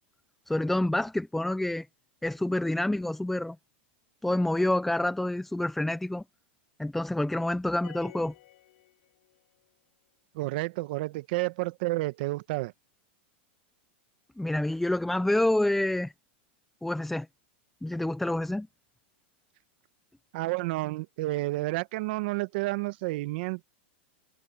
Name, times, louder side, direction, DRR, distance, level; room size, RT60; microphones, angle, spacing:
voice 1, 0.5-1.9 2.2-3.6 4.2-6.2 6.8-8.3 14.4-16.1 16.8-17.3 17.8-18.7, left 1 dB, 5° left, 0.7 m, -27 dB
sound 1, 7.8-9.6, left 17 dB, 70° left, 4.4 m, -51 dB
voice 2, 10.3-12.7 20.3-23.6, right 20 dB, 60° right, 1.3 m, -30 dB
supercardioid pair, 135°, 6 cm